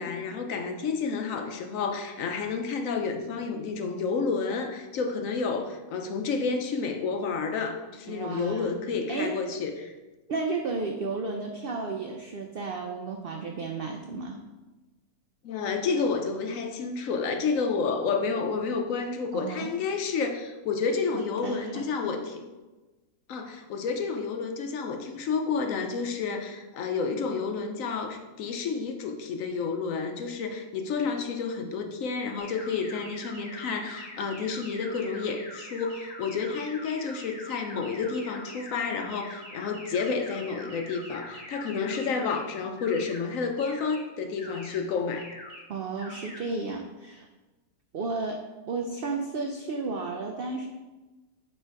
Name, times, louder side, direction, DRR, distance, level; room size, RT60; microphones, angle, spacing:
voice 1, 0.0-9.9 15.4-22.4 23.3-45.3, left 5 dB, 65° left, 5 dB, 1.0 m, -30 dB
voice 2, 8.1-8.7 9.1-9.4 10.3-14.4 19.3-19.7 21.1-22.1 45.7-47.3 47.9-50.7, right 3 dB, 90° right, 3 dB, 0.5 m, -33 dB
sound 1, 32.4-42.4 42.8-43.2 43.6-44.0 44.4-44.8 45.2-45.6 46.0-46.4, left 1 dB, 40° right, 2.1 m, -44 dB
6.5 x 3.3 x 4.6 m, 1.2 s
omnidirectional pair, 1.6 m